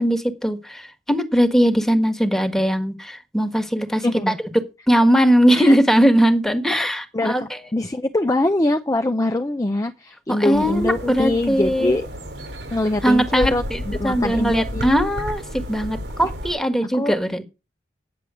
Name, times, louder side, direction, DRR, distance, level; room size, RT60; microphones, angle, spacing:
voice 1, 0.0-4.3 4.9-7.6 10.3-11.9 13.0-17.4, equal, ahead, 1.5 m, -20 dB
voice 2, 4.0-4.4 5.5-5.8 6.7-6.9 7.1-12.1 12.7-14.9 16.9-17.2, left 1 dB, 20° left, 0.6 m, -23 dB
sound 1, 10.5-16.5, equal, 80° right, 4.7 m, -32 dB
9.5 x 7.5 x 6.2 m
head